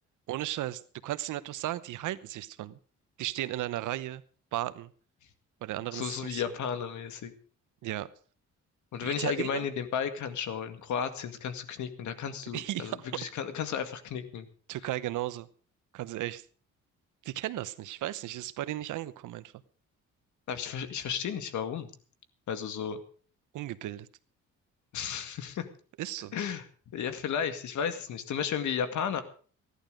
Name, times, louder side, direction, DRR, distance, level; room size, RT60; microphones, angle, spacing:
voice 1, 0.3-2.8 3.2-4.2 4.5-4.9 5.6-6.4 7.8-8.1 9.0-9.7 12.5-13.1 14.7-15.5 15.9-16.4 17.2-19.5 23.5-24.1 26.0-26.4, right 14 dB, 80° right, 15 dB, 0.9 m, -35 dB
voice 2, 5.9-7.3 8.9-14.5 20.5-21.9 22.5-23.0 24.9-25.7 26.3-26.7 26.9-29.2, left 7 dB, 70° left, 9 dB, 2.1 m, -33 dB
16.5 x 11.5 x 5.1 m, 0.42 s
cardioid pair, 90°, 30 cm